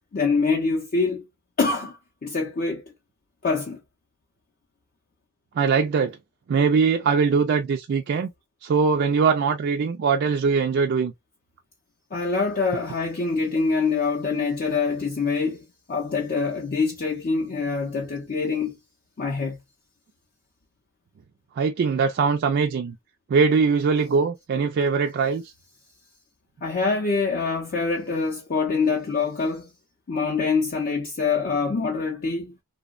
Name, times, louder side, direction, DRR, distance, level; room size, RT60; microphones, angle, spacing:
voice 1, 0.1-1.2 1.6-2.9 3.4-3.8 12.1-18.8 19.2-19.6 26.6-29.7 30.1-32.5, left 4 dB, 40° left, 0.5 m, -25 dB
voice 2, 5.6-6.2 6.5-8.3 8.6-11.1 21.6-23.0 23.3-25.4, right 5 dB, 50° right, 0.3 m, -21 dB
2.8 x 2.1 x 2.3 m
head